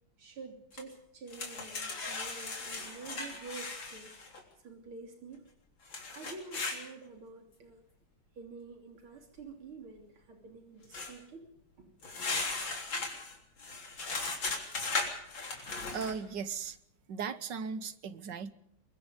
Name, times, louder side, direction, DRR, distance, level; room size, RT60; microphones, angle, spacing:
voice 1, 0.2-4.1 4.6-5.5 6.1-7.8 8.4-11.5 11.8-11.9 15.4-15.5, right 4 dB, 85° right, 3 dB, 4.0 m, -48 dB
sound 1, 0.8-0.9 1.3-4.4 5.9-6.8 10.9-11.1 12.0-16.2, left 3 dB, 65° left, 4.2 m, -37 dB
voice 2, 15.6-16.8 17.1-18.5, right 6 dB, 60° right, 13 dB, 1.6 m, -38 dB
24.0 x 22.5 x 5.2 m, 0.72 s
omnidirectional pair, 2.3 m